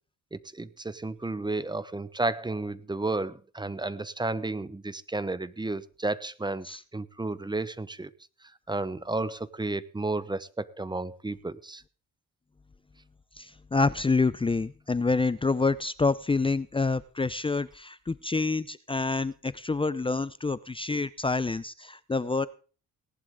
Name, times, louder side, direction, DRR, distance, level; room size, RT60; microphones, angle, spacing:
voice 1, 0.3-6.7 6.9-8.1 8.7-11.8, right 2 dB, 15° right, 1.1 m, -32 dB
voice 2, 13.4-22.5, left 3 dB, 15° left, 0.6 m, -27 dB
18.5 x 11.0 x 3.7 m
cardioid pair, 90°, 30 cm